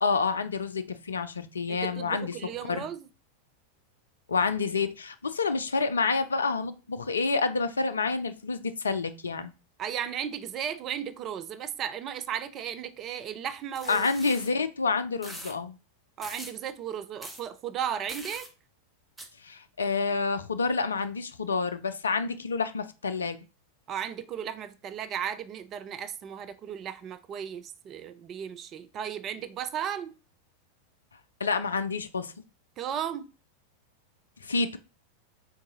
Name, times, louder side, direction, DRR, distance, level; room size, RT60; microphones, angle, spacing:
voice 1, 0.0-2.3 2.7-2.8 4.3-9.5 13.9-15.8 19.4-23.4 31.4-32.3 34.4-34.8, left 4 dB, 70° left, 0.4 m, -28 dB
voice 2, 1.7-3.1 9.8-14.1 16.2-18.5 23.9-30.2 32.8-33.3, right 9 dB, 30° right, 0.4 m, -35 dB
sound 1, 13.7-14.5 15.2-15.5 16.2-16.6 17.2-17.4 18.1-18.5 19.2-19.3, right 1 dB, 5° right, 0.9 m, -42 dB
3.7 x 2.6 x 3.9 m
figure-of-eight pair, 90°, 0 cm